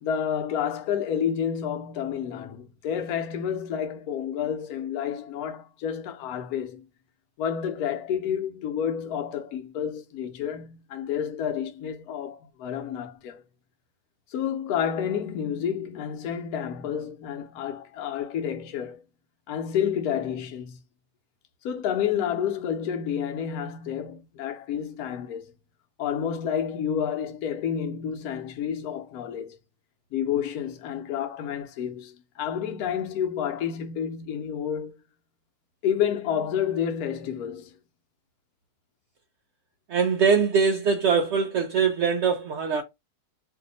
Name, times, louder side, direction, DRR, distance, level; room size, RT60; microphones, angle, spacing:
voice 1, 0.0-6.8 7.4-13.4 14.3-19.0 19.5-20.8 21.6-25.5 26.0-29.6 30.1-35.0 35.8-37.7, left 8 dB, 70° left, 1.1 m, -30 dB
voice 2, 39.9-42.8, right 5 dB, 85° right, 0.6 m, -22 dB
2.7 x 2.6 x 3.8 m
omnidirectional pair, 1.7 m